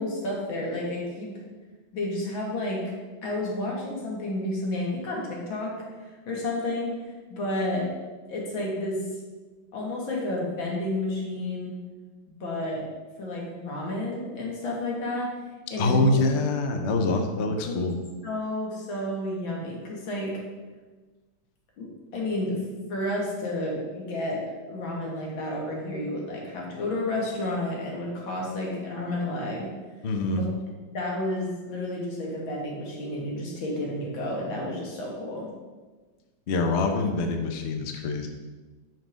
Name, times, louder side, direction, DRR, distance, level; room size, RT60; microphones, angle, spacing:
voice 1, 0.0-1.3 1.9-2.8 3.2-5.7 6.3-6.9 7.3-7.9 8.3-9.0 9.7-11.8 12.4-12.9 13.2-15.3 15.7-16.1 17.6-17.7 18.2-20.3 21.8-29.7 30.3-30.4 30.9-35.5, left 1 dB, 85° left, -2 dB, 2.3 m, -31 dB
voice 2, 15.8-17.9 30.0-30.4 36.5-38.3, left 3 dB, 60° left, 4 dB, 0.7 m, -25 dB
5.6 x 5.5 x 5.1 m, 1.3 s
omnidirectional pair, 2.1 m